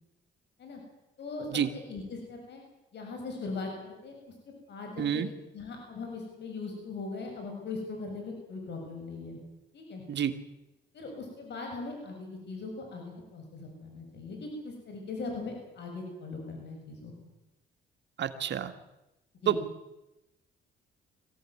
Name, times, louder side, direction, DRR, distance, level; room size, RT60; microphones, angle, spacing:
voice 1, 1.7-2.6 2.9-4.1 4.7-5.2 5.5-9.4 9.7-10.0 10.9-17.1 19.4-19.6, left 3 dB, 60° left, 1 dB, 7.6 m, -40 dB
voice 2, 5.0-5.3 10.1-10.3 18.2-18.7 19.5-19.6, right 9 dB, 60° right, 9 dB, 1.8 m, -28 dB
23.5 x 16.5 x 9.7 m, 0.94 s
cardioid pair, 90°, 20 cm